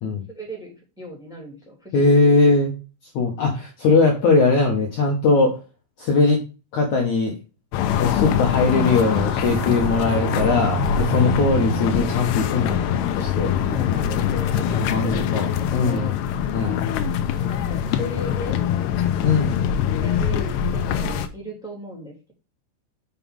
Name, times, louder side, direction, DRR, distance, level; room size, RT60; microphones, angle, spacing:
voice 1, 0.3-2.2 13.6-16.8 17.2-18.6 19.3-22.3, right 1 dB, ahead, 0 dB, 2.3 m, -37 dB
voice 2, 1.9-2.7 3.1-5.6 6.0-6.4 6.7-7.3 8.0-13.5 14.6-16.1 16.5-16.8 19.2-19.6, left 3 dB, 70° left, 0 dB, 1.8 m, -20 dB
sound 1, 7.7-21.3, left 9 dB, 90° left, 2.4 m, -23 dB
Bowed string instrument, 8.8-13.3, right 15 dB, 90° right, 3.6 m, -31 dB
7.1 x 6.9 x 3.6 m, 0.30 s
omnidirectional pair, 5.7 m